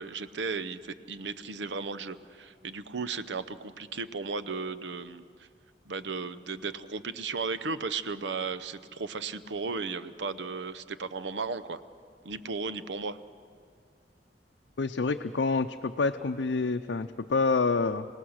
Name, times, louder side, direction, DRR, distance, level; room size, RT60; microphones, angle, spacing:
voice 1, 0.0-5.3 5.9-11.8 12.2-13.2, right 4 dB, 85° right, 13 dB, 0.7 m, -35 dB
voice 2, 14.8-18.1, left 4 dB, 90° left, 5 dB, 0.6 m, -27 dB
26.5 x 18.0 x 6.4 m, 2.2 s
head